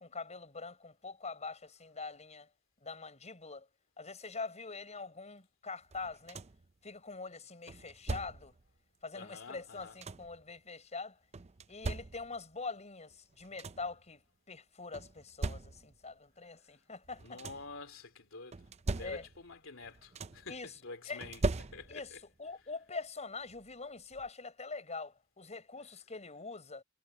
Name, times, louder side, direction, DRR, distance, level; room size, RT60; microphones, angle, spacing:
voice 1, 0.0-2.5 2.8-3.7 4.0-6.4 6.8-8.5 9.0-11.2 11.7-17.4 19.0-19.2 20.5-20.7 21.1-21.2 21.9-22.1 22.4-26.8, left 4 dB, 35° left, 5.5 m, -44 dB
sound 1, 5.9-6.7 7.7-8.6 9.6-10.4 11.3-12.5 13.1-13.2 13.4-14.0 14.9-16.1 17.0-17.8 18.5-19.6 19.8-20.6 21.2-22.2 23.5-23.6 24.1-24.3, right 3 dB, 30° right, 0.6 m, -40 dB
voice 2, 9.1-10.0 17.2-18.6 18.9-22.2 22.5-22.7, left 3 dB, 70° left, 3.3 m, -49 dB
head